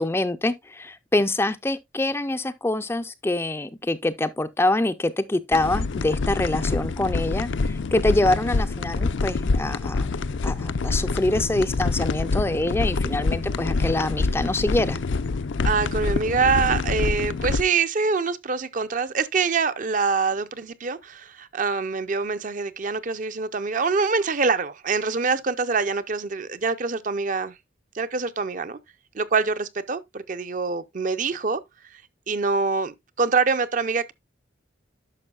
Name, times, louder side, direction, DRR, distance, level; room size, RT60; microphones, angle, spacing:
voice 1, 0.0-10.2 10.4-15.0, left 2 dB, 10° left, 0.4 m, -25 dB
sound 1, 5.5-17.6, left 3 dB, 70° left, 0.5 m, -26 dB
voice 2, 15.6-27.5 27.9-28.8 29.1-31.6 32.3-34.1, right 4 dB, 40° right, 0.5 m, -25 dB
11.0 x 6.0 x 2.3 m
head